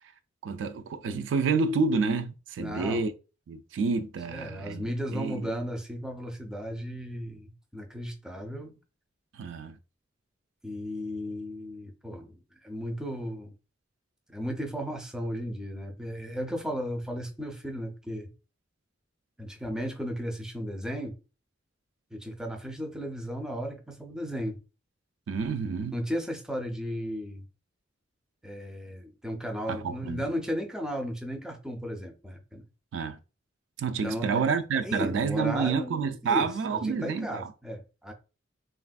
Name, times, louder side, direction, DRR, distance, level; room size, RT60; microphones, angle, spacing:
voice 1, 0.4-3.1 3.5-5.5 9.3-9.8 25.3-26.0 29.7-30.3 32.9-33.2 33.8-37.5, right 5 dB, 70° right, 0.3 m, -29 dB
voice 2, 2.6-3.0 4.3-8.8 10.6-13.5 14.3-18.3 19.4-21.2 22.1-24.6 25.9-27.4 28.4-32.6 34.0-34.5 34.8-38.1, equal, 5° right, 0.4 m, -35 dB
3.3 x 2.4 x 2.2 m
head